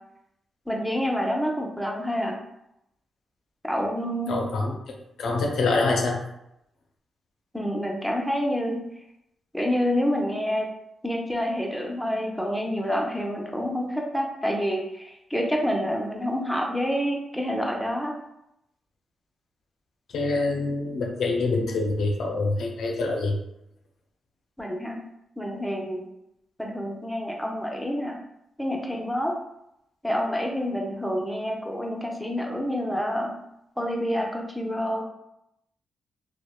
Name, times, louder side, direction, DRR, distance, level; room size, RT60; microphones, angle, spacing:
voice 1, 0.7-2.4 3.6-4.4 7.5-8.8 9.5-10.7 11.0-18.1 24.6-25.0 25.4-26.0 26.6-28.2 28.6-29.3 30.0-33.3 33.8-35.0, equal, ahead, 0 dB, 0.6 m, -28 dB
voice 2, 4.3-4.7 5.2-6.2 20.1-23.3, left 3 dB, 75° left, 0 dB, 0.4 m, -25 dB
2.7 x 2.0 x 2.2 m, 0.82 s
supercardioid pair, 45°, 0 cm